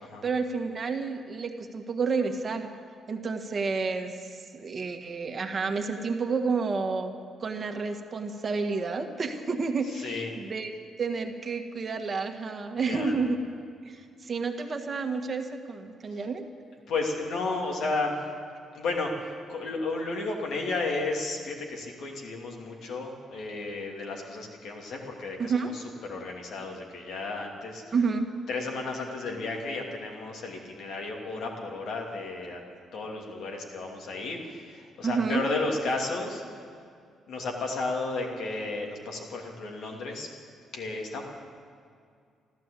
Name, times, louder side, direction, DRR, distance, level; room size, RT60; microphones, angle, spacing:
voice 1, 0.2-2.7 3.1-7.1 7.4-10.7 11.0-13.4 13.8-16.4 25.4-25.7 27.9-28.3 35.0-35.4, right 4 dB, 40° right, 5 dB, 1.5 m, -30 dB
voice 2, 9.9-10.3 12.9-13.1 16.1-16.2 16.9-18.2 18.7-27.8 28.5-32.6 32.9-36.4 37.3-40.3 40.7-41.2, left 3 dB, 70° left, 1 dB, 2.6 m, -33 dB
13.5 x 12.5 x 8.3 m, 2.3 s
cardioid pair, 90°, 0 cm